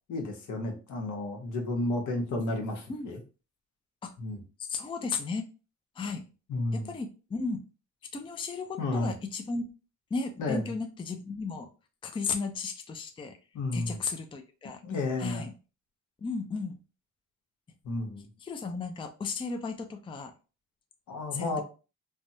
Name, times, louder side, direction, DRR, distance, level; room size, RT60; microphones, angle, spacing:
voice 1, 0.1-3.2 4.2-4.4 6.5-7.0 8.8-9.1 10.4-10.7 13.5-14.0 14.8-15.5 17.8-18.3 21.1-21.6, left 2 dB, 75° left, 3 dB, 1.0 m, -32 dB
voice 2, 4.7-5.4 6.0-6.2 6.9-7.6 8.1-9.6 10.1-11.7 12.0-13.4 13.7-14.8 15.2-15.5 16.2-16.8 18.4-20.3 21.3-21.6, left 4 dB, 15° left, 6 dB, 0.4 m, -34 dB
3.3 x 2.1 x 2.7 m, 0.33 s
cardioid pair, 90°, 30 cm